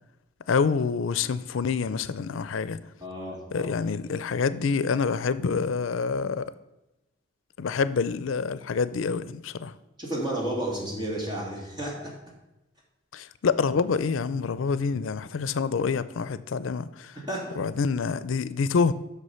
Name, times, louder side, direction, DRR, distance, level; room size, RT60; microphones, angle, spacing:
voice 1, 0.5-2.8 3.5-6.5 7.6-9.7 13.1-17.1 17.6-18.9, left 5 dB, 85° left, 0.4 m, -27 dB
voice 2, 3.0-3.7 10.0-12.1 17.1-17.6, right 1 dB, 20° right, 2.2 m, -32 dB
8.1 x 6.3 x 5.6 m
head